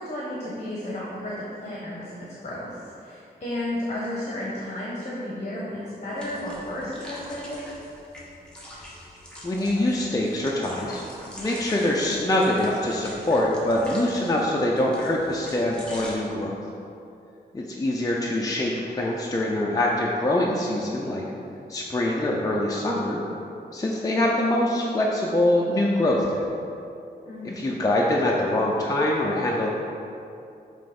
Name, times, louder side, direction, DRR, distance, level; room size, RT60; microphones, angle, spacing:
voice 1, 0.0-2.2 2.4-7.7 27.2-27.6, left 1 dB, 40° left, -6 dB, 1.1 m, -33 dB
sound 1, 6.2-16.1, equal, 5° left, 1.5 m, -43 dB
voice 2, 9.4-11.0 11.4-16.5 17.5-21.2 21.7-23.2 23.7-26.4 27.6-29.7, left 1 dB, 20° left, -3 dB, 0.6 m, -24 dB
7.4 x 3.3 x 5.2 m, 2.7 s
wide cardioid pair, 105°, 17 cm